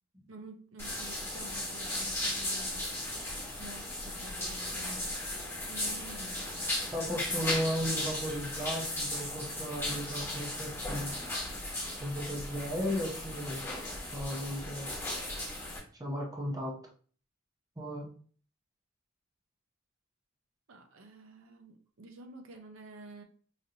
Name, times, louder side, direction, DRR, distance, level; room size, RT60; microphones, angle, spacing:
voice 1, 0.3-2.9 3.6-5.2 5.7-6.7 20.7-23.2, right 2 dB, 70° right, 5 dB, 0.6 m, -49 dB
sound 1, 0.8-15.8, left 1 dB, 10° left, 1.1 m, -36 dB
voice 2, 6.9-11.1 12.0-13.7 14.1-14.9 15.9-16.8 17.8-18.1, equal, 15° right, 0 dB, 0.7 m, -35 dB
4.9 x 2.6 x 2.8 m, 0.44 s
head